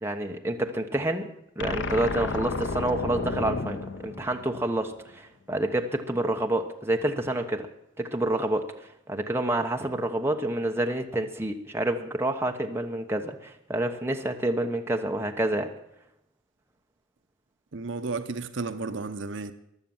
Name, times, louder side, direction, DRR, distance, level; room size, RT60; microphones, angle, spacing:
voice 1, 0.0-1.3 1.6-7.7 8.0-15.7, right 1 dB, 10° right, 3 dB, 1.0 m, -28 dB
sound 1, 1.6-4.9, left 3 dB, 60° left, 0.8 m, -32 dB
voice 2, 17.7-19.5, right 3 dB, 60° right, 10 dB, 0.8 m, -33 dB
15.5 x 11.0 x 7.1 m, 0.79 s
head